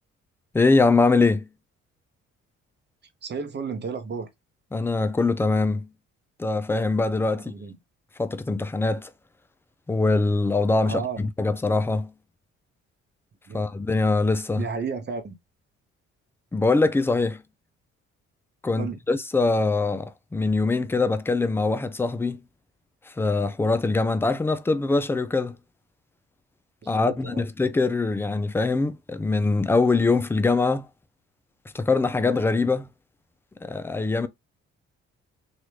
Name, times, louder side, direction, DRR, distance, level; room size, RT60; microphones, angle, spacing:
voice 1, 0.5-1.5 4.7-5.9 6.4-7.5 8.2-9.1 9.9-12.1 13.5-14.6 16.5-17.4 18.6-22.4 23.2-25.6 26.9-30.9 31.7-32.9 33.6-34.3, left 3 dB, 5° left, 0.3 m, -23 dB
voice 2, 3.2-4.3 7.3-7.8 10.8-11.2 13.5-13.6 14.6-15.4 18.8-19.0 26.8-27.5, right 5 dB, 30° right, 0.8 m, -32 dB
3.0 x 2.3 x 3.1 m
hypercardioid pair, 45°, 35 cm